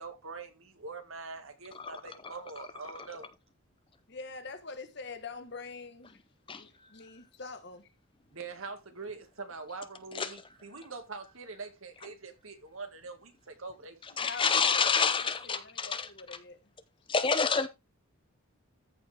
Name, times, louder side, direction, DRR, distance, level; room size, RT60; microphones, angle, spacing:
voice 1, 0.0-3.3 8.3-14.2, right 4 dB, 75° right, 2.1 m, -44 dB
voice 2, 1.8-2.3 6.5-6.6 10.1-10.3 14.2-16.1 17.1-17.7, left 5 dB, 25° left, 0.7 m, -28 dB
voice 3, 4.1-6.2 6.5-7.9 14.2-15.2 15.4-16.6, left 4 dB, 50° left, 1.5 m, -45 dB
14.0 x 5.3 x 3.5 m
head